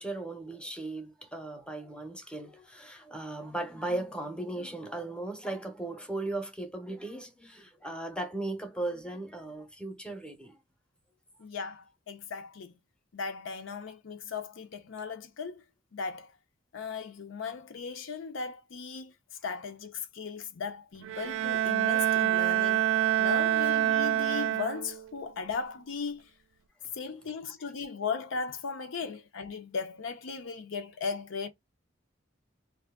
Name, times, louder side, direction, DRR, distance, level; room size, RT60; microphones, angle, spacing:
voice 1, 0.0-10.6 29.0-29.1, right 2 dB, 5° left, 0.6 m, -37 dB
voice 2, 11.4-12.7 13.1-15.6 15.9-16.3 16.7-19.1 19.4-22.9 23.2-26.3 26.9-31.5, left 5 dB, 85° left, 0.5 m, -37 dB
Bowed string instrument, 21.0-25.1, right 12 dB, 75° right, 0.3 m, -26 dB
2.6 x 2.4 x 3.5 m
head